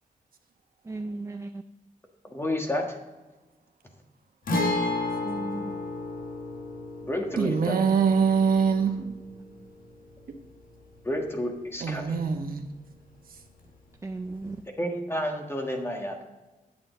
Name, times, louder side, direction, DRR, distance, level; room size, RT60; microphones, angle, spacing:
voice 1, 0.8-1.6 5.2-5.7 9.0-9.2 14.0-14.6, right 2 dB, 20° right, 8 dB, 0.4 m, -36 dB
voice 2, 2.2-2.9 7.1-7.8 11.0-12.2 14.8-16.2, left 1 dB, 15° left, 2 dB, 1.5 m, -30 dB
Guitar, 4.5-12.1 12.4-12.5 14.5-14.6, left 2 dB, 75° left, 1.5 m, -33 dB
voice 3, 7.4-8.9 11.8-12.6, right 6 dB, 85° right, 4 dB, 1.2 m, -23 dB
9.0 x 8.6 x 3.9 m, 1.2 s
wide cardioid pair, 120°, 15 cm